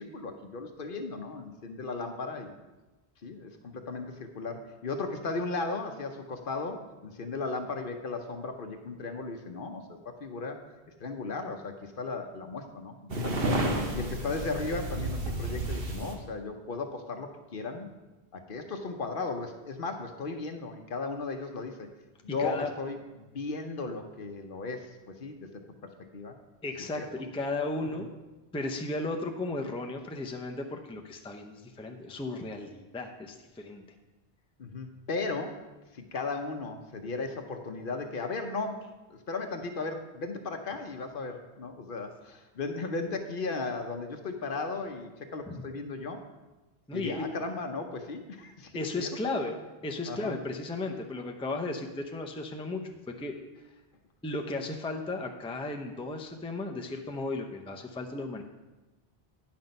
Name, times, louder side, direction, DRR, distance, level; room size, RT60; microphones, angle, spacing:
voice 1, 0.0-2.5 3.2-10.6 11.0-13.4 13.9-17.9 18.3-21.9 22.2-25.6 26.1-26.4 26.9-27.1 34.6-35.6 35.9-46.2 46.9-49.1 49.4-49.5 50.1-50.4, left 3 dB, 60° left, 6 dB, 0.9 m, -36 dB
sound 1, 13.1-16.1, right 1 dB, 65° right, 1.3 m, -31 dB
voice 2, 22.4-22.7 26.6-28.1 28.5-33.8 45.5-45.6 46.9-47.3 48.7-49.6 49.8-52.8 53.1-53.3 54.2-58.4, left 2 dB, 5° left, 3 dB, 0.5 m, -35 dB
9.5 x 5.9 x 5.3 m, 1.1 s
omnidirectional pair, 1.1 m